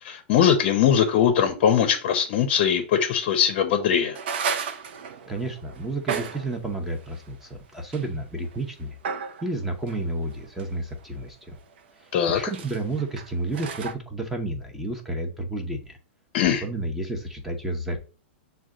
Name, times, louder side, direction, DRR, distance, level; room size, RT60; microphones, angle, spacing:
voice 1, 0.0-4.2 12.1-12.4 16.3-16.6, left 8 dB, 45° left, 0.6 m, -21 dB
sound 1, 4.1-6.6 7.1-7.2 7.8-8.0 8.4-8.6 9.0-9.5 9.9-11.2 11.8-11.9 12.1-13.9, right 6 dB, 60° right, 0.6 m, -33 dB
voice 2, 5.3-9.0 9.4-11.6 12.0-12.1 12.3-16.0 16.6-18.0, right 2 dB, 5° right, 0.7 m, -31 dB
6.2 x 2.2 x 3.7 m
hypercardioid pair, 150°, 6 cm